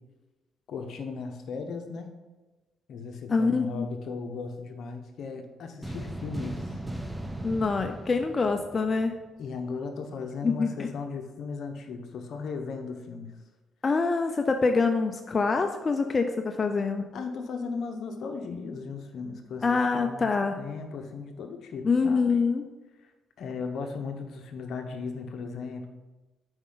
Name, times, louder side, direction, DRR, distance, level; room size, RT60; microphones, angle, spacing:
voice 1, 0.7-2.1 2.9-6.8 9.4-13.4 17.1-22.3 23.0-23.1 23.4-25.9, left 4 dB, 70° left, 5 dB, 1.0 m, -36 dB
voice 2, 3.3-3.9 7.4-9.1 10.4-10.9 13.8-17.1 19.6-20.6 21.8-22.6, left 4 dB, 35° left, 6 dB, 0.5 m, -25 dB
sound 1, 5.8-9.3, right 1 dB, 10° right, 0.8 m, -37 dB
7.9 x 5.4 x 4.0 m, 1.2 s
cardioid pair, 90°, 0 cm